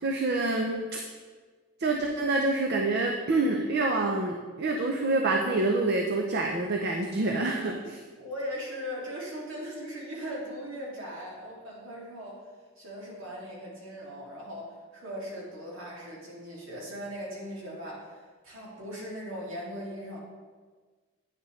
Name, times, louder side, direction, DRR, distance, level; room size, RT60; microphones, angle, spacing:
voice 1, 0.0-1.0 1.8-8.0, right 2 dB, 55° right, 2 dB, 0.6 m, -27 dB
voice 2, 8.2-12.4 12.8-20.2, equal, 70° right, -5 dB, 2.3 m, -39 dB
9.1 x 6.5 x 3.2 m, 1.4 s
head